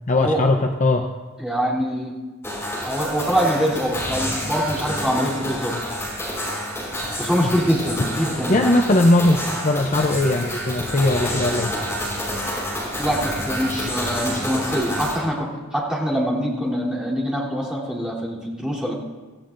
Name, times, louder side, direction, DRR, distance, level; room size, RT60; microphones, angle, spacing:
voice 1, 0.1-1.1 7.4-7.5 8.5-9.4 9.6-11.7, left 2 dB, 35° left, 4 dB, 0.6 m, -19 dB
voice 2, 1.4-2.2 2.8-5.8 7.2-8.7 13.0-18.9, equal, 5° right, -7 dB, 3.3 m, -24 dB
sound 1, 2.4-15.2, equal, 10° left, 5.7 m, -28 dB
25.0 x 15.5 x 2.6 m, 1.3 s
head